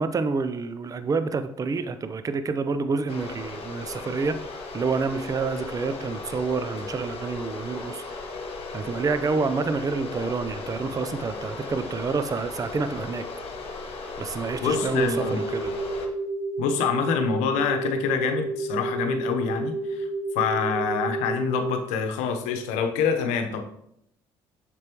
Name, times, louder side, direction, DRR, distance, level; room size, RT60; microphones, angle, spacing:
voice 1, 0.0-8.2 8.7-13.2 14.2-15.7, right 4 dB, 30° right, 11 dB, 0.5 m, -28 dB
sound 1, 3.1-16.1, left 3 dB, 50° left, 1.5 m, -36 dB
voice 2, 14.6-15.4 16.6-20.1 20.3-23.6, left 6 dB, 75° left, 7 dB, 0.9 m, -26 dB
sound 2, 14.6-21.8, right 2 dB, 90° right, 0.9 m, -30 dB
7.5 x 6.1 x 3.0 m, 0.75 s
hypercardioid pair, 60°, 12 cm